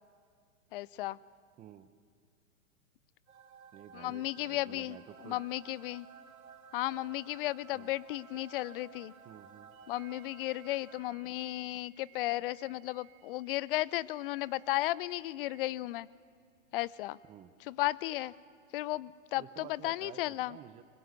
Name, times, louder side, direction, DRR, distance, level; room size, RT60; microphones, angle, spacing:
voice 1, 0.7-1.2 3.9-6.1 6.7-9.1 9.9-16.1 16.7-17.2 17.7-18.3 18.7-20.6, left 17 dB, 40° left, 21 dB, 0.5 m, -34 dB
voice 2, 1.6-1.9 3.7-5.4 7.7-7.9 9.2-9.7 17.2-17.5 19.4-20.8, right 11 dB, 20° right, 14 dB, 0.6 m, -51 dB
sound 1, 3.3-11.5, right 6 dB, 85° right, 3.3 m, -55 dB
sound 2, 9.7-15.6, right 15 dB, 35° right, 3.1 m, -63 dB
23.5 x 20.5 x 8.0 m, 2.2 s
hypercardioid pair, 120°, 41 cm